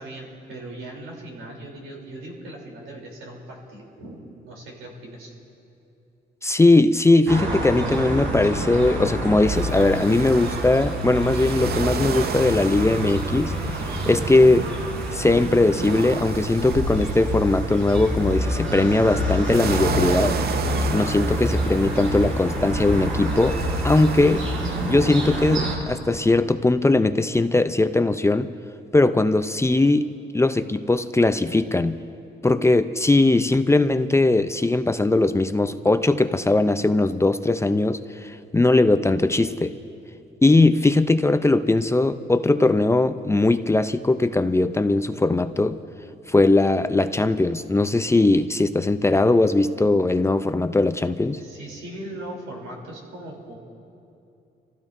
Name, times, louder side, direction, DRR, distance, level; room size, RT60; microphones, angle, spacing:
voice 1, 0.0-5.3 51.2-53.6, right 1 dB, 90° right, -2 dB, 3.5 m, -39 dB
voice 2, 6.4-13.5 14.1-14.7 15.1-20.3 20.9-24.5 24.8-28.5 28.9-32.0 32.4-39.7 40.4-45.8 46.3-51.4, left 2 dB, 15° left, 10 dB, 0.5 m, -20 dB
sound 1, 7.3-25.8, equal, 70° right, 4.4 m, -27 dB
sound 2, 9.5-25.6, right 7 dB, 50° right, 0.6 m, -34 dB
27.5 x 15.5 x 2.7 m, 2.7 s
cardioid pair, 90°, 20 cm